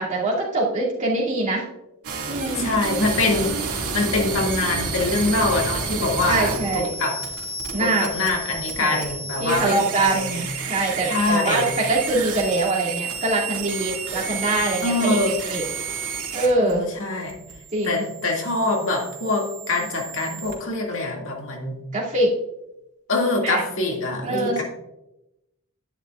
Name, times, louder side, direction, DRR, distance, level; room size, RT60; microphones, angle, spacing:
voice 1, 0.0-1.6 2.3-2.7 6.3-6.9 7.7-8.1 8.8-9.1 9.4-15.6 16.3-16.8 17.7-18.0 21.9-22.3 23.4-23.6 24.2-24.6, right 2 dB, 35° right, -5 dB, 2.6 m, -23 dB
sound 1, 2.0-20.5, right 4 dB, 80° right, 2.3 m, -31 dB
voice 2, 2.6-7.2 7.8-10.4 11.0-11.7 14.8-15.4 16.6-17.4 17.8-21.8 23.1-24.6, left 2 dB, 60° left, 0 dB, 2.2 m, -24 dB
11.0 x 10.0 x 2.5 m, 0.90 s
head